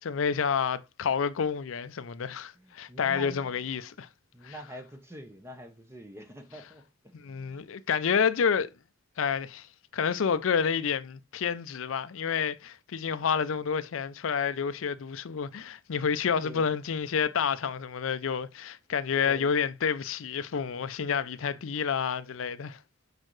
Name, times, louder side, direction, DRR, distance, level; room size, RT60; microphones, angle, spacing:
voice 1, 0.0-4.1 4.4-4.5 7.1-8.7 9.2-9.7 9.9-22.8, left 6 dB, 75° left, 0.5 m, -29 dB
voice 2, 2.5-3.6 4.3-7.7 16.4-16.7 19.2-19.5, equal, 10° right, 0.8 m, -45 dB
6.4 x 5.0 x 3.1 m
head